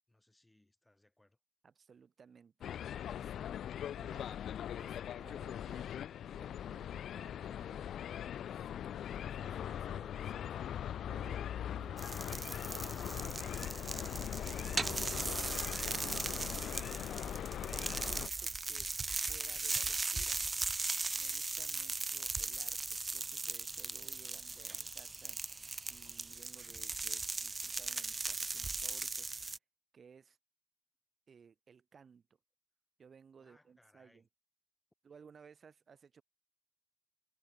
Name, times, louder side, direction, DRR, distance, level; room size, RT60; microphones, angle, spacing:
voice 1, 0.1-1.4 18.4-18.5 24.2-25.0 33.4-34.3, left 1 dB, 10° left, 7.0 m, -69 dB
voice 2, 1.6-2.7 3.1-3.3 3.9-4.4 4.8-5.9 6.2-7.9 8.5-13.9 14.6-15.3 15.8-16.9 17.7-20.4 21.1-25.4 25.9-29.3 29.9-30.4 31.3-32.2 33.0-34.3 35.0-36.2, right 6 dB, 50° right, 6.4 m, -60 dB
sound 1, 2.6-18.3, left 10 dB, 85° left, 0.6 m, -41 dB
Sausage in oily frying pan sizzling, 12.0-29.6, right 3 dB, 25° right, 0.6 m, -38 dB
cardioid pair, 125°, 0 cm